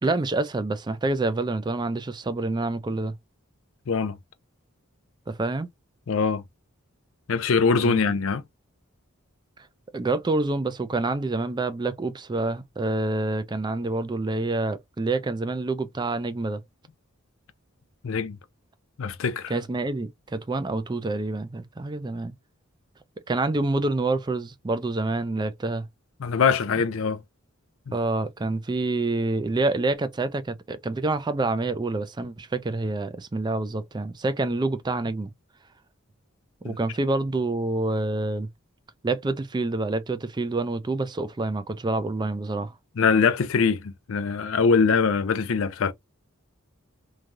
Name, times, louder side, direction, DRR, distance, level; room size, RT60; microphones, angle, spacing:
voice 1, 0.0-3.2 5.3-5.7 7.8-8.0 9.9-16.6 19.5-22.3 23.3-25.9 27.9-35.3 36.6-38.5 39.0-42.7, right 2 dB, 20° right, 0.4 m, -27 dB
voice 2, 3.9-4.2 6.1-6.4 7.3-8.4 18.0-18.4 19.0-19.5 26.2-27.2 27.9-28.0 36.6-36.7 43.0-45.9, left 5 dB, 65° left, 0.5 m, -23 dB
3.1 x 2.3 x 2.5 m
head